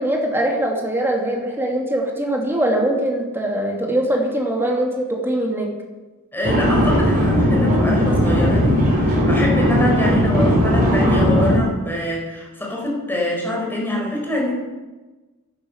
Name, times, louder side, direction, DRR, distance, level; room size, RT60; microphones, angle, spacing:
voice 1, 0.0-5.7, right 1 dB, 10° right, 0 dB, 2.7 m, -22 dB
voice 2, 6.3-14.5, left 1 dB, 10° left, -2 dB, 4.9 m, -25 dB
sound 1, 6.4-11.6, equal, 45° right, 4.1 m, -17 dB
12.0 x 10.5 x 8.2 m, 1.2 s
head